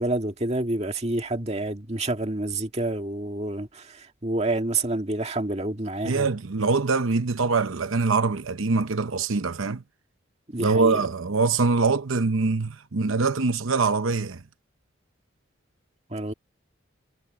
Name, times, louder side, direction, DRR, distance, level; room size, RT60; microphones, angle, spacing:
voice 1, 0.0-6.3 10.5-11.1 16.1-16.3, right 2 dB, 30° right, 2.0 m, -28 dB
voice 2, 6.1-9.8 10.6-14.4, right 4 dB, 85° right, 0.9 m, -23 dB
head